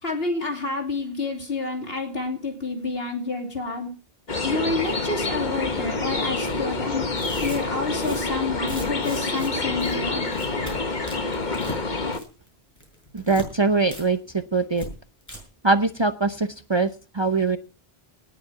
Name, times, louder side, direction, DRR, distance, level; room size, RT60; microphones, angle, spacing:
voice 1, 0.0-3.9 4.4-7.0 7.4-10.3, left 3 dB, 70° left, 3 dB, 3.1 m, -28 dB
sound 1, 4.3-12.2, left 3 dB, 45° left, 1.6 m, -27 dB
Tearing, 6.4-6.6 7.1-9.5 9.8-10.0 10.3-10.7 11.1-11.8 12.1-12.5 12.8-13.5 13.9-14.0 14.3-14.4 14.8-14.9 15.2-15.4, equal, 15° left, 6.1 m, -38 dB
voice 2, 13.1-14.9 15.6-17.6, right 3 dB, 30° right, 10 dB, 0.7 m, -22 dB
18.5 x 7.2 x 5.8 m, 0.36 s
omnidirectional pair, 1.0 m